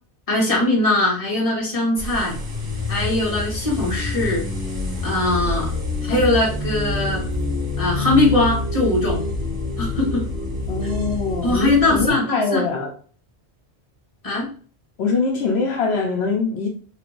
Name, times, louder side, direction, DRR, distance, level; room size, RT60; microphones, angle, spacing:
voice 1, 0.3-2.4 2.9-4.5 5.0-5.7 6.0-7.3 7.8-9.2 9.8-10.3 11.4-12.6 14.2-14.5, left 2 dB, 35° left, 1.2 m, -20 dB
sound 1, 2.0-12.1, left 2 dB, 55° right, 1.3 m, -26 dB
voice 2, 10.7-12.9 15.0-16.7, left 4 dB, 75° left, 0.9 m, -23 dB
3.2 x 2.5 x 3.0 m
omnidirectional pair, 1.1 m